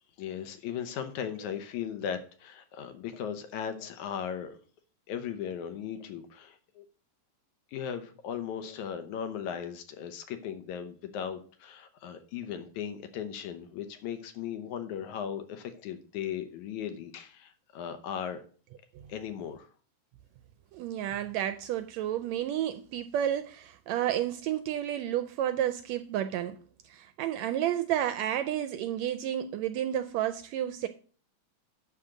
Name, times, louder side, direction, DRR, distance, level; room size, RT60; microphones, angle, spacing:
voice 1, 0.2-4.6 5.1-6.8 7.7-18.4 19.1-19.7, left 8 dB, 75° left, 2.4 m, -37 dB
voice 2, 20.7-26.6 26.8-30.9, right 11 dB, 80° right, 1.6 m, -31 dB
11.5 x 3.9 x 7.3 m
omnidirectional pair, 3.5 m